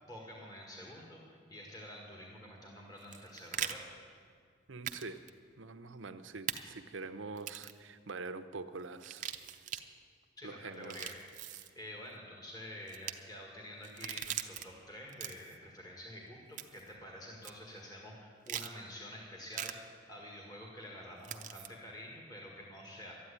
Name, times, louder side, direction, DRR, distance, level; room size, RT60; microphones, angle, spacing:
voice 1, 0.1-3.8 10.4-11.2 11.4-23.1, left 1 dB, 20° left, -2 dB, 1.8 m, -48 dB
sound 1, 3.0-3.7 4.9-5.0 5.3-5.4 6.5-6.6 7.4-7.8 9.0-9.8 10.7-11.7 12.9-13.1 13.8-14.6 15.1-15.6 16.6-16.9 17.4-17.5 18.5-18.7 19.5-19.7 21.2-21.7, right 10 dB, 40° right, 0.6 m, -40 dB
voice 2, 4.7-5.2 5.6-9.3 10.4-11.1, right 3 dB, 75° right, 10 dB, 0.8 m, -45 dB
13.0 x 9.3 x 9.9 m, 2.2 s
head